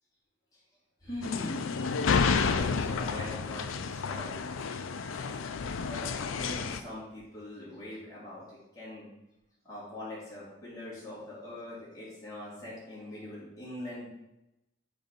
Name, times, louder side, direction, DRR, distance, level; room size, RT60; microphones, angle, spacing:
voice 1, 1.0-9.1 9.6-14.1, left 1 dB, 15° left, -8 dB, 3.1 m, -42 dB
sound 1, 1.2-6.8, left 5 dB, 85° left, 0.5 m, -30 dB
6.3 x 5.2 x 5.3 m, 0.92 s
head